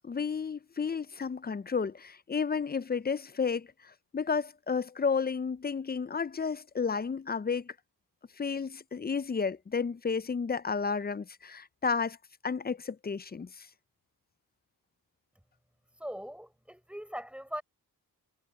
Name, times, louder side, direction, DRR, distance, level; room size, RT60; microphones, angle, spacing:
voice 1, 0.0-7.7 8.4-12.2 12.4-13.7, left 5 dB, 25° left, 0.4 m, -32 dB
voice 2, 16.0-17.6, equal, 5° right, 5.3 m, -40 dB
wide cardioid pair, 90°, 39 cm